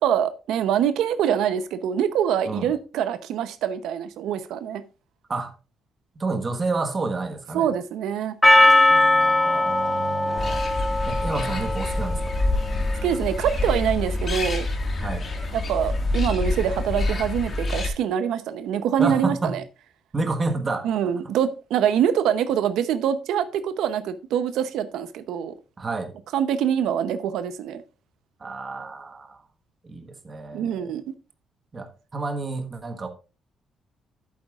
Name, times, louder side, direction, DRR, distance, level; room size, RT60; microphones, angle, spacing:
voice 1, 0.0-4.8 7.5-8.3 13.0-14.7 15.5-19.6 20.8-25.5 26.3-27.8 30.5-31.1, right 9 dB, 85° right, 0.7 m, -24 dB
voice 2, 6.2-7.7 8.9-10.6 11.1-12.2 15.0-15.3 19.0-19.5 20.1-20.9 25.8-26.1 28.4-29.4 29.8-30.9 31.7-33.1, right 3 dB, 25° right, 1.3 m, -29 dB
Percussion, 8.4-12.7, left 2 dB, 5° left, 0.5 m, -20 dB
sound 1, 10.4-17.9, left 2 dB, 30° left, 1.8 m, -27 dB
11.5 x 8.6 x 2.4 m
cardioid pair, 165°, 0 cm